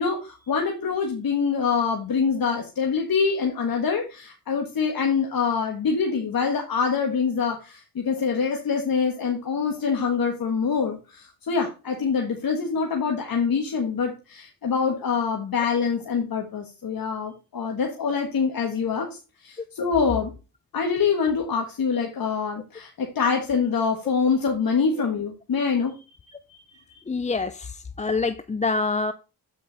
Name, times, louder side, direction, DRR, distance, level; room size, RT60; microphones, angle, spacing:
voice 1, 0.0-20.3 20.7-25.9 26.5-26.6, left 5 dB, 60° left, 1.5 m, -25 dB
voice 2, 27.1-29.1, left 3 dB, 20° left, 0.4 m, -26 dB
8.1 x 5.1 x 3.9 m
cardioid pair, 65°, 39 cm